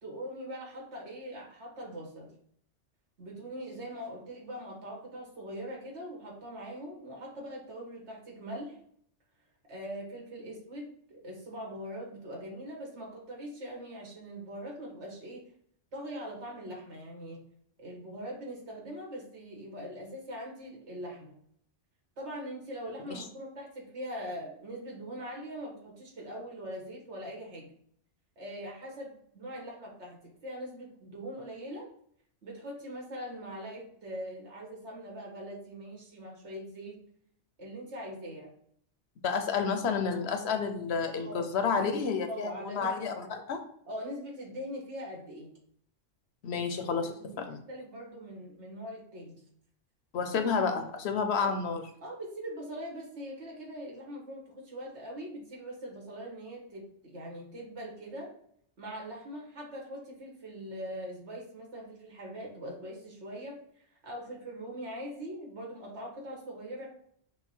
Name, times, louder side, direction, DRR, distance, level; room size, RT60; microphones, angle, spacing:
voice 1, 0.0-2.3 3.2-8.8 9.7-15.4 15.9-17.4 17.8-21.4 22.2-27.7 28.4-31.9 32.4-37.0 37.6-38.5 41.1-41.5 42.3-42.9 43.9-45.5 47.2-49.4 51.4-51.5 52.0-58.3 58.8-66.9, equal, 70° right, -1 dB, 1.6 m, -42 dB
voice 2, 39.2-43.6 46.4-47.6 50.1-51.9, left 5 dB, 65° left, 7 dB, 0.8 m, -30 dB
5.7 x 2.2 x 4.2 m, 0.66 s
omnidirectional pair, 1.2 m